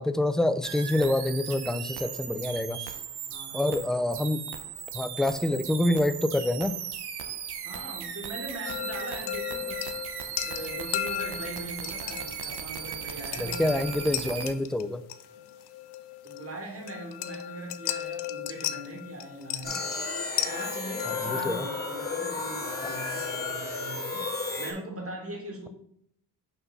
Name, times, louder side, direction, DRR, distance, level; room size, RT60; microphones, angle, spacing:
voice 1, 0.0-2.8 3.5-4.4 4.9-6.8 13.4-15.0 21.2-21.7, left 1 dB, ahead, 11 dB, 0.3 m, -27 dB
sound 1, 0.6-14.5, right 8 dB, 75° right, 0.9 m, -37 dB
voice 2, 3.3-3.8 7.6-9.9 10.4-13.8 16.2-19.8 20.4-24.3 24.6-25.7, right 1 dB, 35° right, 1 dB, 2.1 m, -40 dB
sound 2, 8.7-23.5, left 13 dB, 80° left, 0.6 m, -37 dB
sound 3, 19.6-24.7, left 3 dB, 25° left, 2.0 m, -33 dB
5.8 x 3.9 x 5.3 m, 0.71 s
cardioid pair, 90°, 39 cm